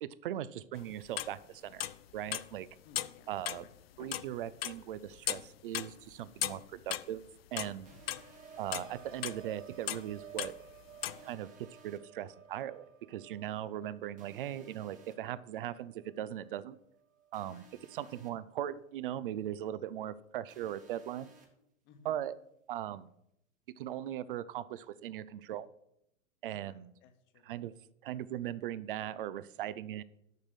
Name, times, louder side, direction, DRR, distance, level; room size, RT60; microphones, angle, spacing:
voice 1, 0.0-1.9 2.1-2.7 3.3-3.6 4.0-7.2 7.5-7.9 8.6-10.5 11.2-16.8 17.3-17.6 17.9-21.3 22.0-22.3 22.7-23.1 23.8-25.7 26.4-26.9 27.5-27.7 28.0-30.0, right 11 dB, 40° right, 17 dB, 0.5 m, -39 dB
sound 1, 0.7-1.4 1.8-2.5 2.9-4.3 4.6-5.5 5.7-7.2 7.6-8.3 8.7-9.4 9.9-10.1 10.4-11.2, left 13 dB, 50° left, 0.4 m, -37 dB
voice 2, 2.8-3.3 3.6-3.7 7.9-8.3 17.5-17.7 18.0-18.2 21.8-22.3 26.6-27.5, left 6 dB, 30° left, 7 dB, 1.1 m, -60 dB
sound 2, 7.4-17.5 17.9-18.3, right 9 dB, 65° right, 1.1 m, -55 dB
sound 3, 7.8-8.8 11.0-12.0 14.2-15.1 17.3-18.3 20.5-21.5, right 5 dB, 20° right, 1.3 m, -60 dB
6.6 x 6.5 x 7.7 m, 0.80 s
figure-of-eight pair, 105°, 41 cm